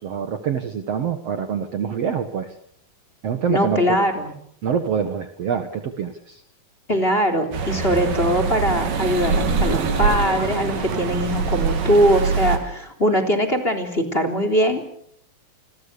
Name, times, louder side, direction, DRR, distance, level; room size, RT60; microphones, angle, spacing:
voice 1, 0.0-2.5 3.2-4.0 4.6-6.4, right 7 dB, 55° right, 8 dB, 2.1 m, -25 dB
voice 2, 3.5-4.3 6.9-14.9, equal, 15° left, 8 dB, 3.5 m, -21 dB
sound 1, 7.5-12.6, right 4 dB, 75° right, 4.6 m, -23 dB
28.0 x 22.5 x 6.8 m, 0.67 s
omnidirectional pair, 4.0 m